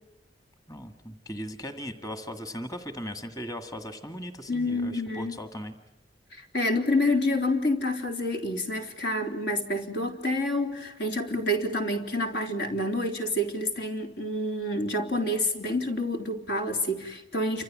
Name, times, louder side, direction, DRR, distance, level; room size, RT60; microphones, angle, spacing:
voice 1, 0.7-5.7, equal, 20° left, 1.8 m, -38 dB
voice 2, 4.5-5.4 6.3-17.6, left 1 dB, 75° left, 3.5 m, -28 dB
29.5 x 26.5 x 7.4 m
head